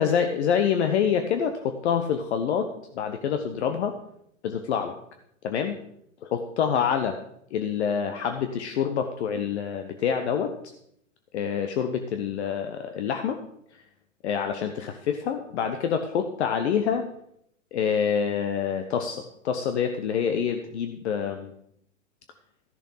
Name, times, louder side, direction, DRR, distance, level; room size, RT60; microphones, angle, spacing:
voice 1, 0.0-2.7 2.9-3.9 4.4-4.9 5.4-5.7 6.2-7.2 7.5-10.5 11.3-13.4 14.2-17.0 17.7-21.5, left 7 dB, 55° left, 6 dB, 1.1 m, -26 dB
14.0 x 7.0 x 5.7 m, 0.72 s
figure-of-eight pair, 110°, 40 cm